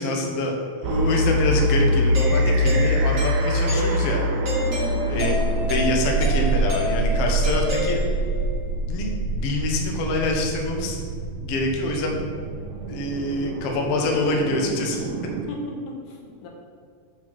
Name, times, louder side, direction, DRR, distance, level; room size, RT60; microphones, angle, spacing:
voice 1, 0.0-4.7 5.1-8.0 8.9-11.0 11.4-12.2 12.9-15.0, left 2 dB, 65° left, 1 dB, 1.6 m, -26 dB
sound 1, 0.8-15.4, right 1 dB, 80° right, 1.8 m, -24 dB
Doorbell, 2.1-8.5, left 1 dB, 35° right, 1.4 m, -30 dB
voice 2, 4.8-5.2 15.3-16.5, left 2 dB, 85° left, 0 dB, 2.5 m, -37 dB
6.0 x 4.7 x 5.8 m, 2.1 s
omnidirectional pair, 3.5 m